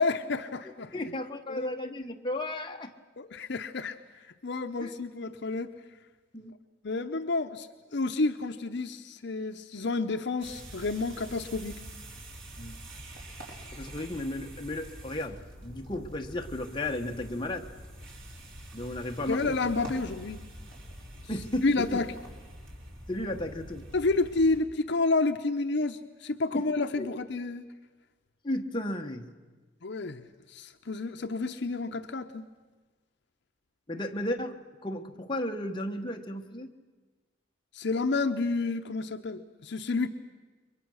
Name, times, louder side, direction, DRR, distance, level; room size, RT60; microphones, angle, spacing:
voice 1, 0.0-0.9 1.5-1.7 3.2-4.0 4.4-5.7 6.8-11.8 19.3-20.4 21.6-22.1 23.9-27.6 29.8-32.5 37.7-40.1, left 3 dB, 60° left, 7 dB, 0.7 m, -30 dB
voice 2, 0.9-2.9 4.8-4.9 6.3-6.5 12.6-12.8 13.7-17.7 18.7-19.6 21.3-22.0 23.1-23.9 26.5-27.1 28.4-29.3 33.9-36.7, left 1 dB, 25° left, 3 dB, 1.2 m, -34 dB
sound 1, 10.4-24.6, right 1 dB, 70° right, 4.4 m, -45 dB
29.5 x 23.0 x 6.3 m, 1.3 s
head